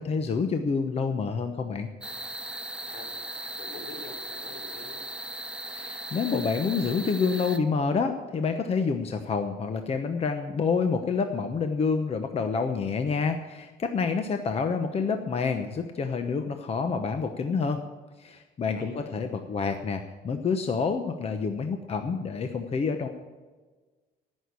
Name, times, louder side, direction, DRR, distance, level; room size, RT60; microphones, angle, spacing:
voice 1, 0.0-1.9 5.7-17.8 18.2-23.1, left 5 dB, 35° left, 7 dB, 1.0 m, -28 dB
sound 1, 2.0-7.6, right 1 dB, 5° right, 0.7 m, -38 dB
voice 2, 3.6-5.0 18.7-19.2, left 3 dB, 80° left, 3 dB, 3.9 m, -45 dB
16.0 x 6.5 x 8.4 m, 1.3 s
cardioid pair, 110°, 17 cm